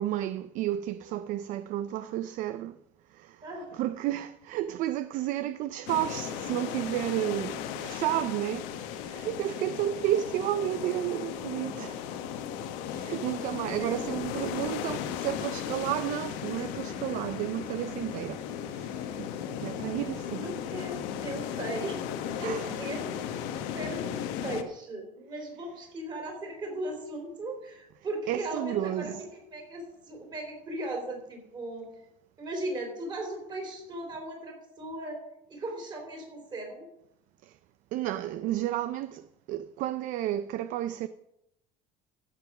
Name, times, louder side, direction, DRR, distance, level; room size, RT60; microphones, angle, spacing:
voice 1, 0.0-2.8 3.1-3.5 3.7-12.2 12.9-20.4 22.4-22.7 28.3-29.2 37.4-37.6 37.9-41.1, right 13 dB, 50° right, 0.4 m, -32 dB
voice 2, 3.4-3.7 7.2-7.5 13.7-14.1 20.3-22.0 22.4-23.2 23.7-31.9 32.4-35.2 35.5-36.9, right 1 dB, 25° right, 3.5 m, -37 dB
sound 1, 5.9-24.6, left 9 dB, 80° left, 1.2 m, -36 dB
14.5 x 7.0 x 6.0 m
cardioid pair, 160°, 17 cm